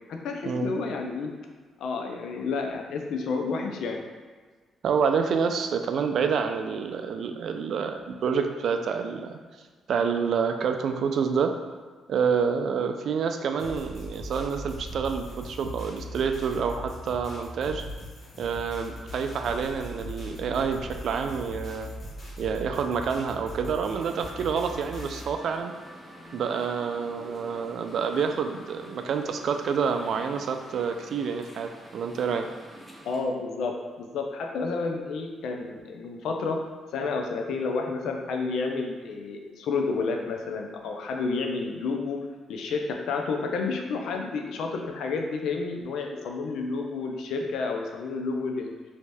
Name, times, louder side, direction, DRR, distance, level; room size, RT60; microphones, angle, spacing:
voice 1, 0.1-1.3 1.8-4.0 33.0-36.6 36.9-42.2 42.5-48.7, left 4 dB, 80° left, 3 dB, 0.4 m, -30 dB
voice 2, 4.8-9.4 9.9-11.6 12.1-17.8 18.4-21.9 22.4-25.7 26.3-32.5, right 6 dB, 65° right, 6 dB, 0.3 m, -28 dB
sound 1, 13.6-25.3, left 1 dB, 55° left, 1.1 m, -40 dB
sound 2, 23.9-33.2, equal, 10° left, 0.7 m, -47 dB
3.1 x 2.7 x 3.3 m, 1.5 s
cardioid pair, 85°, 0 cm